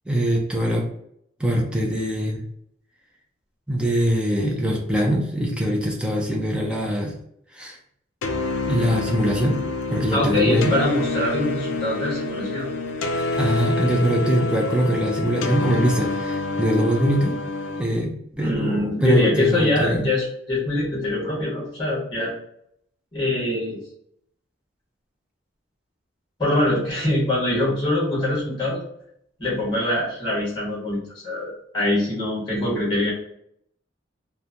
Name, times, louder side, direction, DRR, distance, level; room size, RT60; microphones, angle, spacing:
voice 1, 0.1-0.9 1.4-2.4 3.7-7.1 7.5-7.8 8.7-9.6 9.9-10.7 13.2-17.4 17.8-20.1, equal, 5° right, -1 dB, 0.4 m, -22 dB
sound 1, 8.2-17.8, left 3 dB, 85° left, 0.4 m, -27 dB
voice 2, 10.1-12.7 18.4-22.3 23.1-23.8 26.4-28.8 29.4-33.1, left 1 dB, 25° left, -7 dB, 1.1 m, -23 dB
3.0 x 2.1 x 2.4 m, 0.71 s
head